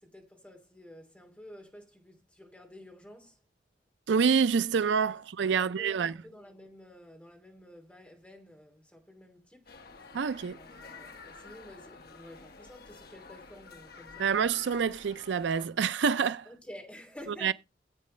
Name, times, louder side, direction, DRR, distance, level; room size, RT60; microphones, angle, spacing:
voice 1, 0.0-3.4 5.1-5.2 5.5-10.1 10.4-14.4 16.4-17.5, left 1 dB, 10° left, 2.9 m, -51 dB
voice 2, 4.1-6.1 10.1-10.6 14.2-16.5 17.4-17.5, right 6 dB, 85° right, 0.4 m, -27 dB
sound 1, 9.7-15.7, left 4 dB, 60° left, 1.3 m, -50 dB
14.0 x 8.3 x 3.2 m
head